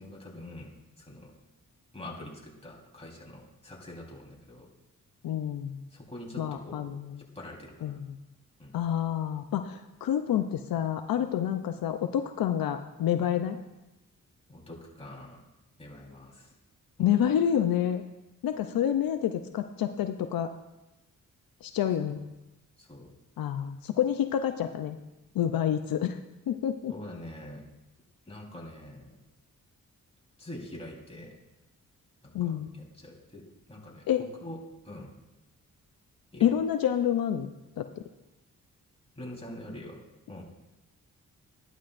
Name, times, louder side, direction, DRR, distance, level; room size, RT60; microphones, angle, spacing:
voice 1, 0.0-1.3 1.9-4.7 5.9-7.0 7.3-8.0 8.6-8.8 14.5-15.4 15.8-16.5 17.0-17.2 22.0-22.1 22.8-23.1 26.9-27.6 28.3-29.2 30.4-31.3 32.2-33.4 33.7-34.1 34.4-34.6 34.8-35.1 36.3-36.5 39.2-40.0 40.3-40.4, left 1 dB, 15° left, -3 dB, 3.9 m, -44 dB
voice 2, 5.2-5.8 6.4-7.2 7.8-8.2 8.7-13.6 17.0-18.0 18.4-20.5 21.6-22.2 23.4-25.0 25.3-26.2 26.5-26.9 32.3-32.7 34.1-34.2 36.4-37.5 37.8-37.9, left 10 dB, 80° left, 7 dB, 0.6 m, -28 dB
12.5 x 11.5 x 2.6 m, 0.98 s
cardioid pair, 55°, 34 cm